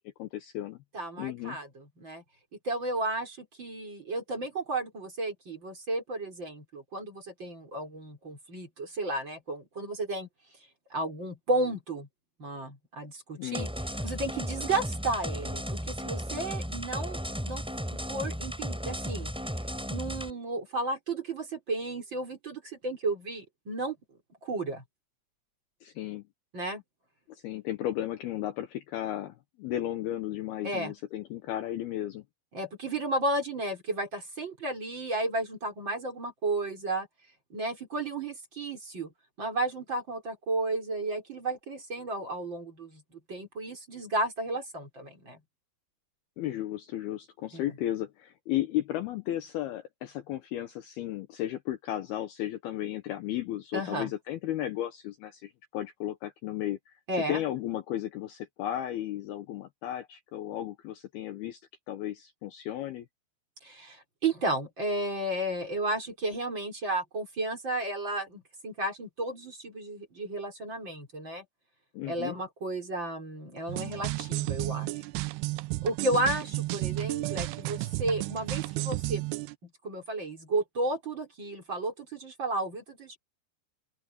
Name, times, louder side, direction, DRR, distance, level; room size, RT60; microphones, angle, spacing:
voice 1, 0.2-0.8 1.2-1.6 13.4-13.7 25.8-26.3 27.3-32.2 46.4-57.0 57.3-61.6 61.9-63.1 71.9-72.4, left 13 dB, 70° left, 2.6 m, -34 dB
voice 2, 0.9-2.2 2.6-10.3 10.9-12.1 12.4-13.7 14.0-17.2 17.4-17.6 18.1-19.3 19.9-24.0 24.4-24.8 26.5-26.8 30.6-30.9 32.5-37.1 37.5-39.1 39.4-43.0 43.3-45.4 47.5-47.6 53.7-54.1 57.1-57.4 63.6-71.4 72.0-75.0 75.8-79.2 79.6-83.2, right 2 dB, 25° right, 4.7 m, -33 dB
sound 1, 13.5-20.3, equal, ahead, 4.1 m, -35 dB
sound 2, 73.7-79.5, right 21 dB, 80° right, 2.4 m, -32 dB
open air
omnidirectional pair, 5.2 m